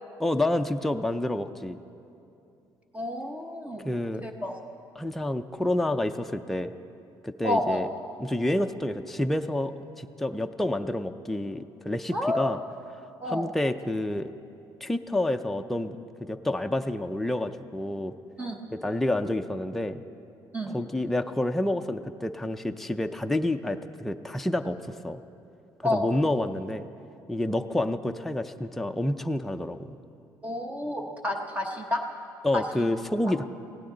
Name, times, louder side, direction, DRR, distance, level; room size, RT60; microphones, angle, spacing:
voice 1, 0.2-1.8 3.8-4.2 5.0-6.7 7.2-7.9 8.2-12.6 13.3-14.3 14.8-18.1 18.7-20.0 20.7-25.2 25.8-26.9 27.3-29.9 32.4-33.4, left 1 dB, 5° left, 6 dB, 0.4 m, -29 dB
voice 2, 2.9-3.9 4.2-4.6 7.4-7.9 12.1-12.5 13.2-13.5 18.4-18.5 20.5-20.8 25.8-26.0 30.4-32.0 32.5-32.6, left 1 dB, 20° right, 2 dB, 0.9 m, -29 dB
19.5 x 15.5 x 3.9 m, 2.7 s
cardioid pair, 140°, 8 cm